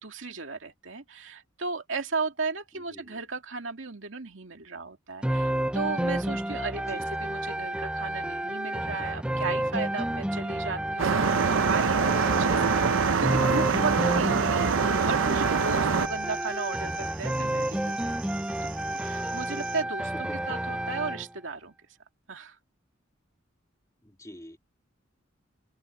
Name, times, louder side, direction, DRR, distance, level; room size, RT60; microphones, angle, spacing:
voice 1, 0.0-12.8 13.2-20.1 20.5-21.7 22.3-22.6, right 4 dB, 75° right, 2.4 m, -35 dB
voice 2, 2.7-3.2 6.7-7.1 14.9-15.1 16.8-17.2 20.1-20.4 24.0-24.6, equal, 15° left, 2.4 m, -46 dB
sound 1, 5.2-21.3, right 1 dB, 5° right, 0.4 m, -30 dB
sound 2, 11.0-16.1, right 5 dB, 90° right, 0.6 m, -24 dB
sound 3, 11.2-19.8, right 11 dB, 50° right, 6.3 m, -46 dB
open air
head